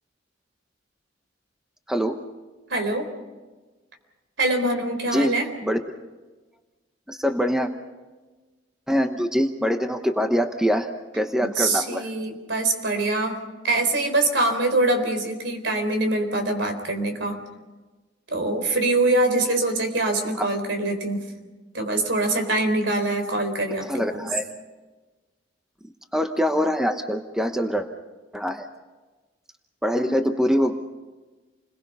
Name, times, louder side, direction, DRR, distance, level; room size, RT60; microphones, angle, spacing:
voice 1, 1.9-2.2 5.1-5.8 7.1-7.7 8.9-10.9 11.1-12.1 20.3-20.5 23.8-24.5 26.1-27.9 28.3-28.7 29.8-30.7, equal, 5° right, 6 dB, 1.0 m, -24 dB
voice 2, 2.7-3.1 4.4-5.5 11.4-13.4 13.6-17.4 18.3-21.2 21.7-24.3 30.1-30.2, right 2 dB, 70° right, 6 dB, 3.9 m, -24 dB
29.0 x 21.5 x 5.5 m, 1.3 s
head